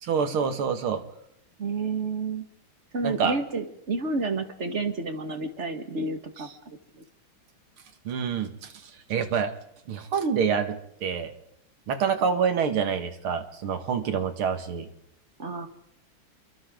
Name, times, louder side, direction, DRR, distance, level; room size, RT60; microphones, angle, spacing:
voice 1, 0.0-1.0 3.0-3.4 8.0-8.7 9.1-9.5 9.9-11.3 11.9-14.9, right 6 dB, 85° right, 8 dB, 2.6 m, -27 dB
voice 2, 1.6-2.4 2.9-7.0 15.4-15.7, right 3 dB, 35° right, 7 dB, 2.0 m, -30 dB
28.0 x 24.0 x 3.8 m, 0.77 s
omnidirectional pair, 2.3 m